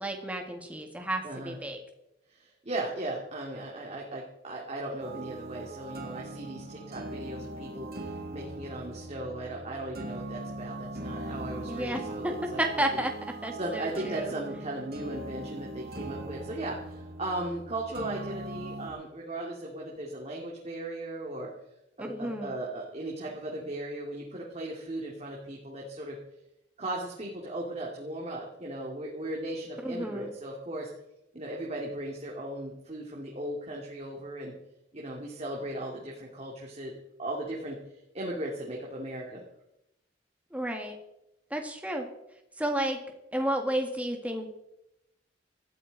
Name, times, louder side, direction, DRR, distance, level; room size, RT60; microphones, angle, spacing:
voice 1, 0.0-1.8 11.7-13.1 13.4-14.3 22.0-22.6 29.8-30.3 40.5-41.0 41.5-42.1 42.6-43.0 43.3-44.5, right 1 dB, 10° right, 3 dB, 2.0 m, -32 dB
voice 2, 1.2-1.6 2.3-12.6 12.9-13.0 13.6-21.5 22.0-26.2 26.8-30.9 31.3-34.6 34.9-36.9 37.2-37.8 38.1-39.4, right 1 dB, 35° right, -2 dB, 2.5 m, -37 dB
sound 1, 5.0-18.9, right 2 dB, 55° right, 2.5 m, -40 dB
19.0 x 14.0 x 4.1 m, 0.84 s
head